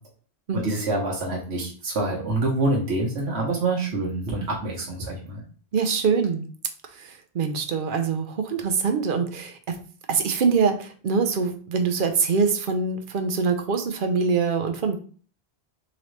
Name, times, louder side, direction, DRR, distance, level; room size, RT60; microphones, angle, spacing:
voice 1, 0.5-5.4, right 2 dB, 80° right, -3 dB, 1.3 m, -26 dB
voice 2, 5.7-6.5 7.0-9.6 10.1-15.0, right 5 dB, 60° right, 6 dB, 0.7 m, -24 dB
3.8 x 3.1 x 3.1 m, 0.42 s
omnidirectional pair, 1.1 m